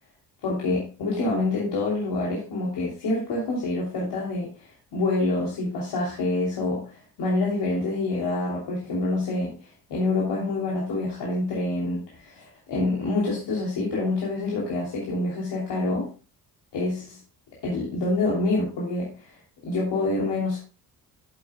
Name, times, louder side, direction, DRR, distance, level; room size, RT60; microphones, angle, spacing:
voice 1, 0.4-9.5 9.9-16.1 16.7-17.2 17.6-19.3 19.6-20.6, left 2 dB, 60° left, -4 dB, 3.1 m, -27 dB
14.0 x 7.8 x 2.2 m, 0.32 s
hypercardioid pair, 45°, 47 cm